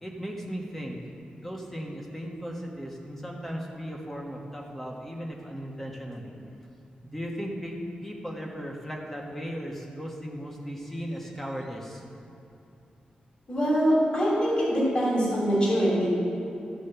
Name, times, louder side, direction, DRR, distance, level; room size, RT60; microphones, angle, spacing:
voice 1, 0.0-1.0 1.3-6.3 7.1-12.0, equal, 10° left, -1 dB, 1.4 m, -36 dB
voice 2, 13.5-16.1, equal, 35° left, -6 dB, 2.9 m, -23 dB
13.5 x 5.3 x 6.8 m, 2.8 s
wide cardioid pair, 150°, 3 cm